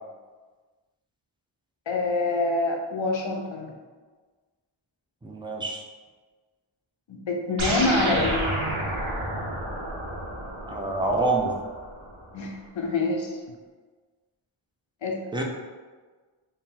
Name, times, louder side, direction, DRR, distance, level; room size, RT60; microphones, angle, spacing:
voice 1, 1.9-3.7 7.1-8.5 12.3-13.3 15.0-15.2, left 3 dB, 70° left, 1 dB, 0.7 m, -26 dB
voice 2, 5.2-5.8 10.7-11.6 15.3-15.4, right 2 dB, 10° right, 0 dB, 0.5 m, -26 dB
sound 1, 7.6-12.2, right 1 dB, 80° right, 0.9 m, -30 dB
4.3 x 2.1 x 3.7 m, 1.4 s
wide cardioid pair, 55°, 47 cm